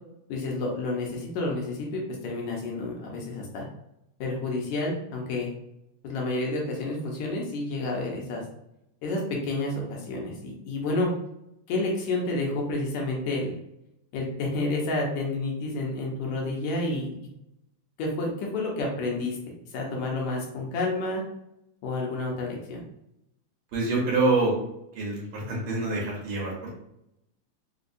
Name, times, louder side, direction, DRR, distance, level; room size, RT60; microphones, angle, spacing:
voice 1, 0.3-3.7 4.2-5.5 6.0-8.4 9.0-11.1 11.7-13.6 14.1-17.1 18.0-19.4 19.7-21.2 21.8-22.8, left 2 dB, 75° left, -1 dB, 2.1 m, -30 dB
voice 2, 23.7-24.5 25.0-26.7, right 3 dB, 70° right, -4 dB, 2.1 m, -26 dB
5.1 x 2.3 x 2.5 m, 0.80 s
omnidirectional pair, 3.4 m